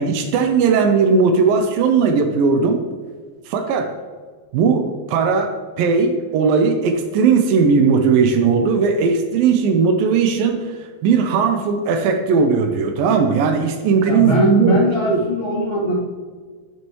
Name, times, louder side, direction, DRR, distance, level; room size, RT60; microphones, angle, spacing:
voice 1, 0.0-2.9 3.5-3.9 4.5-10.8 11.0-15.2, right 5 dB, 85° right, 6 dB, 2.0 m, -17 dB
voice 2, 14.0-15.9, equal, 25° left, -6 dB, 1.3 m, -20 dB
13.0 x 6.2 x 3.1 m, 1.5 s
omnidirectional pair, 4.9 m